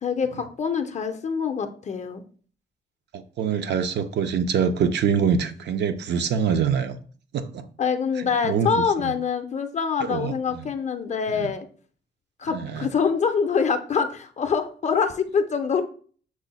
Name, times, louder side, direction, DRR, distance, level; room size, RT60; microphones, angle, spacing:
voice 1, 0.0-2.2 7.8-11.7 12.4-15.8, left 6 dB, 35° left, 8 dB, 0.4 m, -25 dB
voice 2, 3.1-7.0 7.3-7.6 8.2-9.1 10.0-10.7 12.5-12.9, right 7 dB, 60° right, 9 dB, 0.5 m, -25 dB
6.1 x 2.1 x 3.9 m, 0.44 s
cardioid pair, 140°, 20 cm